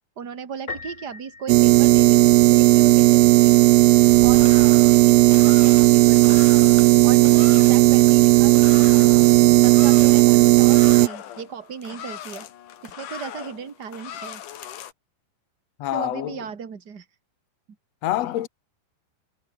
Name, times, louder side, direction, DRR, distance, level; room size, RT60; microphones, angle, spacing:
voice 1, 0.2-3.6 4.2-6.4 7.0-9.3 9.6-12.5 12.8-14.4 15.9-17.0, right 7 dB, 35° right, 1.8 m, -36 dB
Piano, 0.7-2.5, left 3 dB, 20° left, 3.0 m, -39 dB
sound 1, 1.5-11.1, right 19 dB, 85° right, 2.1 m, -14 dB
sound 2, 4.0-14.9, left 10 dB, 55° left, 2.8 m, -40 dB
voice 2, 15.8-16.5 18.0-18.5, left 14 dB, 80° left, 1.5 m, -26 dB
omnidirectional pair, 4.9 m